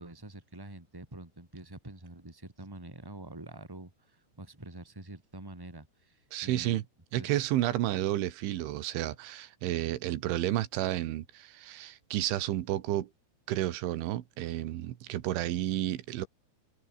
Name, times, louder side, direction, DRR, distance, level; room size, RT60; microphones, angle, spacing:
voice 1, 0.0-6.8 7.1-7.5, right 2 dB, 5° right, 3.4 m, -46 dB
voice 2, 6.3-6.8 7.1-13.1 13.5-16.3, right 14 dB, 85° right, 4.0 m, -31 dB
omnidirectional pair, 5.3 m